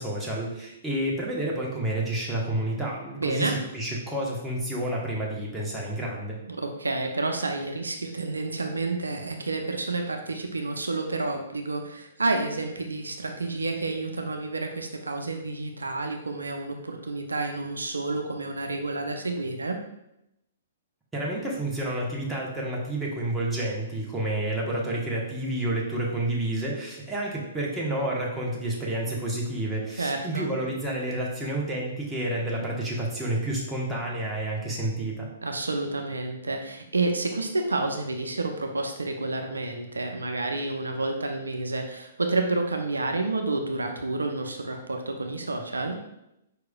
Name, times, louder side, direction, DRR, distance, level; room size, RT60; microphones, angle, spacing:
voice 1, 0.0-6.4 21.1-35.3, right 1 dB, 10° right, -4 dB, 1.1 m, -29 dB
voice 2, 3.2-3.6 6.5-19.8 30.0-30.5 35.4-46.0, right 2 dB, 80° right, 4 dB, 0.5 m, -29 dB
4.9 x 4.6 x 2.3 m, 0.84 s
figure-of-eight pair, 115°, 0 cm